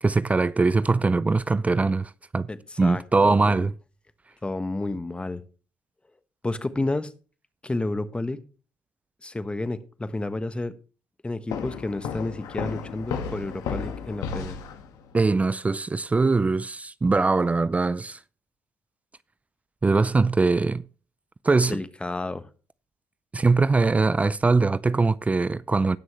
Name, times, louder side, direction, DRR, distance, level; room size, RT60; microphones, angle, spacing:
voice 1, 0.0-2.5 2.8-3.7 15.1-18.2 19.8-20.8 21.4-21.8 23.3-26.0, right 3 dB, 20° right, 0.4 m, -22 dB
voice 2, 2.5-3.6 4.4-5.4 6.4-7.1 7.6-8.4 9.2-10.8 11.2-14.6 21.7-22.5, left 2 dB, 15° left, 1.1 m, -31 dB
sound 1, 11.5-15.2, left 6 dB, 75° left, 1.6 m, -33 dB
18.5 x 6.2 x 3.1 m
supercardioid pair, 60°, 6 cm